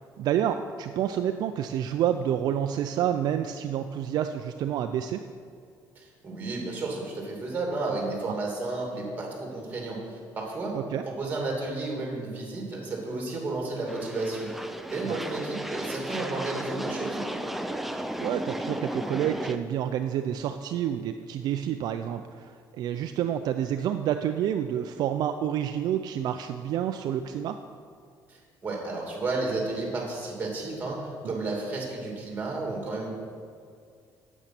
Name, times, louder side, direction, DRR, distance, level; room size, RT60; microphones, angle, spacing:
voice 1, 0.0-5.2 10.7-11.0 15.0-15.2 18.2-27.6 31.2-31.3, right 10 dB, 60° right, 7 dB, 0.4 m, -29 dB
voice 2, 6.0-10.8 11.0-17.3 28.3-33.1, right 2 dB, 25° right, -1 dB, 2.5 m, -32 dB
sound 1, 13.9-19.6, right 1 dB, 5° right, 0.5 m, -34 dB
8.8 x 8.2 x 5.9 m, 2.2 s
cardioid pair, 135°, 8 cm